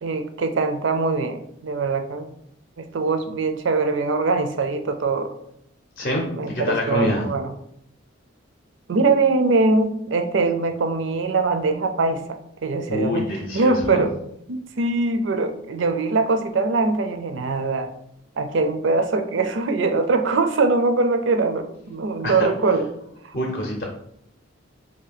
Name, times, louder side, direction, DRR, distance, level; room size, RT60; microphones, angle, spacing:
voice 1, 0.0-2.3 2.8-5.3 6.3-7.5 8.9-12.2 12.6-14.2 14.5-17.9 18.4-22.9 23.2-23.4, right 3 dB, 60° right, 8 dB, 0.4 m, -22 dB
voice 2, 6.0-6.3 6.5-7.2 12.9-14.0 22.2-22.5 23.3-23.8, left 1 dB, 45° left, 0 dB, 0.6 m, -25 dB
2.9 x 2.7 x 4.1 m, 0.74 s
head